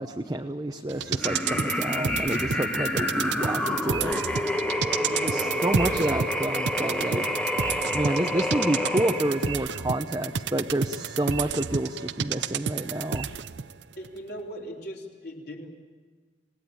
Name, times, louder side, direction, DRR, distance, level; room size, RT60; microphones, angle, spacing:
voice 1, 0.0-4.2 5.2-7.3 7.9-13.3, right 1 dB, 20° right, 4 dB, 0.8 m, -29 dB
sound 1, 0.9-13.7 14.0-14.1, right 6 dB, 70° right, 0.6 m, -31 dB
sound 2, 1.2-9.5, left 1 dB, 5° left, 1.1 m, -29 dB
voice 2, 5.0-5.6 14.0-15.7, equal, 60° left, -1 dB, 3.8 m, -39 dB
27.0 x 18.5 x 9.0 m, 1.4 s
head